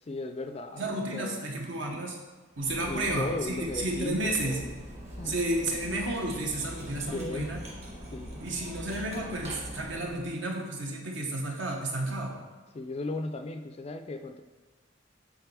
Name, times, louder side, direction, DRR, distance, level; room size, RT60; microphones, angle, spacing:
voice 1, 0.1-1.4 2.9-4.7 5.2-5.4 7.0-7.6 8.1-8.4 12.7-14.4, left 2 dB, 30° left, 7 dB, 0.3 m, -36 dB
voice 2, 0.7-2.2 2.6-4.6 5.2-7.6 8.4-12.4, right 1 dB, 65° right, 0 dB, 1.2 m, -32 dB
Cutlery silverware, 2.5-10.3, equal, 30° right, 1.8 m, -43 dB
8.2 x 4.0 x 4.7 m, 1.4 s
head